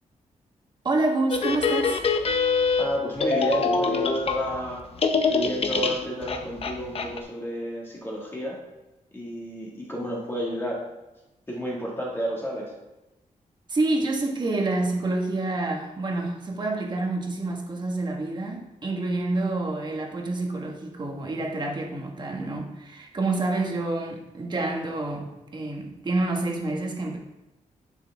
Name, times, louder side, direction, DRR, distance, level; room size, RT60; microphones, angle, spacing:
voice 1, 0.8-2.0 13.7-27.2, right 2 dB, 35° right, 1 dB, 1.5 m, -28 dB
sound 1, 1.3-4.7 5.0-7.2, left 4 dB, 45° left, 0.7 m, -24 dB
voice 2, 2.8-4.9 5.3-8.6 9.1-10.8 11.5-12.7, equal, 15° left, -4 dB, 2.0 m, -31 dB
10.0 x 7.0 x 3.5 m, 0.98 s
wide cardioid pair, 155°, 13 cm